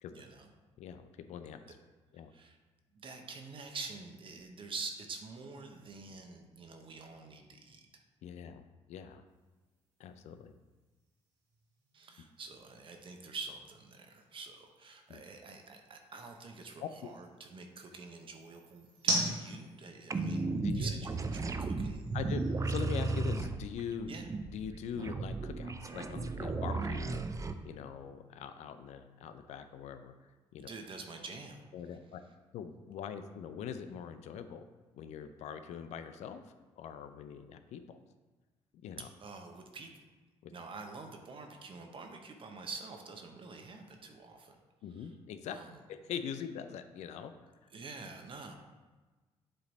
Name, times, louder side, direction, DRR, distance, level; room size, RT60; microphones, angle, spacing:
voice 1, 0.1-0.5 2.3-2.6 2.9-8.0 11.9-20.5 20.7-22.0 24.1-24.3 30.7-31.6 39.2-39.9 40.5-44.6 45.5-45.7 47.7-48.6, right 4 dB, 45° right, 4 dB, 0.9 m, -46 dB
voice 2, 0.8-1.8 2.1-2.3 8.2-9.2 10.0-10.6 15.1-15.2 16.8-17.1 20.6-20.9 22.1-24.2 24.5-30.7 31.7-32.2 32.5-34.6 34.9-36.4 36.8-38.0 38.8-39.1 40.4-40.5 44.8-45.6 45.9-47.3 47.6-47.7, left 8 dB, 75° left, 9 dB, 0.5 m, -43 dB
sound 1, 9.3-23.5, right 1 dB, 90° right, 1.7 m, -43 dB
sound 2, 20.1-27.5, right 3 dB, 25° right, 0.5 m, -35 dB
7.8 x 3.2 x 4.1 m, 1.3 s
supercardioid pair, 75°, 12 cm